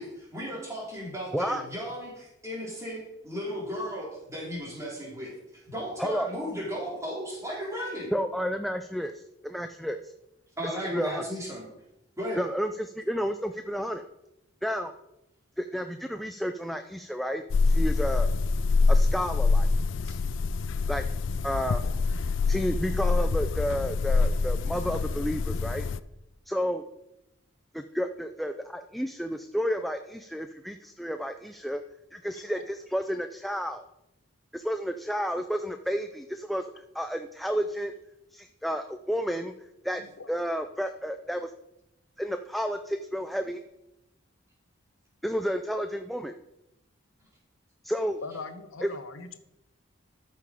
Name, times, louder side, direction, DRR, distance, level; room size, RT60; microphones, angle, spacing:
voice 1, 0.0-8.1 10.6-11.6 12.2-12.5 20.0-20.1 22.2-22.4, equal, 15° right, -4 dB, 3.3 m, -35 dB
voice 2, 1.3-1.6 6.0-6.3 8.1-10.1 10.6-11.4 12.4-14.0 14.6-14.9 15.6-18.3 18.9-19.7 20.9-21.0 21.4-21.9 22.5-25.8 26.5-26.8 27.7-31.8 32.1-33.9 34.5-37.9 38.3-39.5 39.8-40.0 40.3-41.5 42.2-43.6 45.2-46.3 47.9-48.2 48.8-48.9, equal, ahead, 7 dB, 0.3 m, -31 dB
sound 1, 17.5-26.0, left 3 dB, 70° left, 0.4 m, -25 dB
voice 3, 40.0-40.3 48.2-49.4, left 4 dB, 85° left, 9 dB, 0.9 m, -41 dB
13.5 x 5.8 x 4.9 m, 0.88 s
head